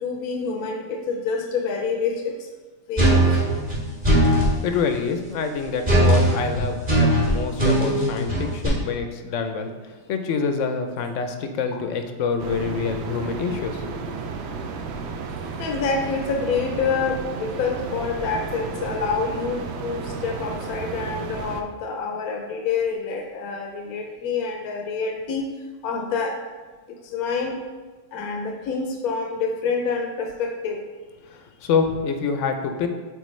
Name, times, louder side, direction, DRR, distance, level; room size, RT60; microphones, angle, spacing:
voice 1, 0.0-2.5 2.9-3.4 15.6-25.5 25.8-26.4 27.0-27.6 28.1-30.8, left 5 dB, 85° left, 2 dB, 1.1 m, -27 dB
sound 1, 3.0-4.5 5.8-8.7, right 1 dB, 30° right, 2.2 m, -19 dB
voice 2, 4.3-9.7 10.1-14.0 31.3-32.9, left 5 dB, 65° left, 6 dB, 0.9 m, -26 dB
sound 2, 12.4-21.6, right 5 dB, 65° right, 0.7 m, -33 dB
8.1 x 4.1 x 3.1 m, 1.3 s
omnidirectional pair, 1.5 m